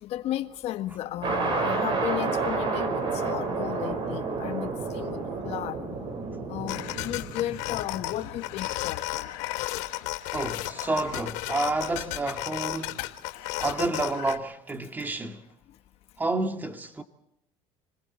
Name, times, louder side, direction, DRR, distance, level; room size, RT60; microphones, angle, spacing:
voice 1, 0.0-5.8 6.5-9.0, left 13 dB, 60° left, 1.5 m, -34 dB
sound 1, 1.2-8.8, right 4 dB, 45° right, 5.0 m, -30 dB
sound 2, 6.7-14.4, left 17 dB, 80° left, 1.3 m, -34 dB
voice 2, 10.3-13.1 13.6-15.4 16.2-17.0, right 2 dB, 15° right, 2.0 m, -30 dB
29.5 x 20.5 x 4.4 m
cardioid pair, 120°, 12 cm